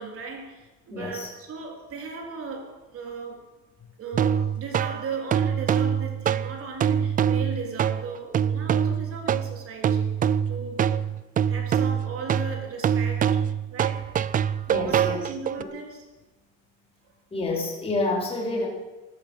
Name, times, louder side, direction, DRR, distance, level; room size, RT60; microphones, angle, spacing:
voice 1, 0.0-3.5 4.0-10.9 11.5-13.4 13.7-14.3 14.8-16.1, right 4 dB, 40° right, 2 dB, 3.5 m, -37 dB
voice 2, 0.9-1.3 14.7-15.2 15.6-15.7 17.3-18.7, left 2 dB, 15° left, -2 dB, 4.3 m, -28 dB
sound 1, 4.1-15.6, right 9 dB, 25° right, 0.4 m, -24 dB
15.5 x 12.0 x 6.4 m, 1.1 s
cardioid pair, 140°, 34 cm